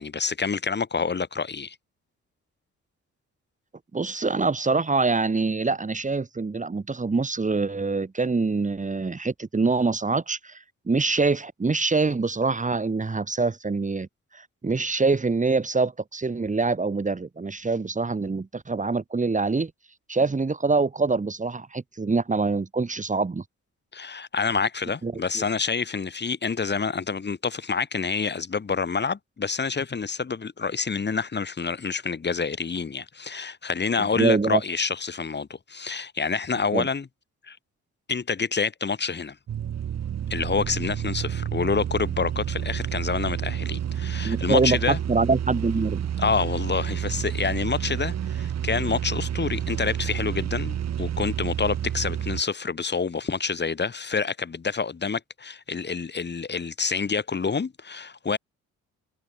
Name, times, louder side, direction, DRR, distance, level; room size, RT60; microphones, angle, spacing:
voice 1, 0.0-1.7 23.9-37.1 37.5-37.6 38.1-39.4 40.3-45.0 46.2-58.4, left 5 dB, 35° left, 6.5 m, -27 dB
voice 2, 3.9-14.1 14.3-19.7 20.1-23.4 25.0-25.4 34.2-34.6 36.7-36.9 44.2-46.0, right 3 dB, 25° right, 3.6 m, -25 dB
sound 1, 39.5-52.4, right 10 dB, 60° right, 3.0 m, -29 dB
cardioid pair, 90°, 30 cm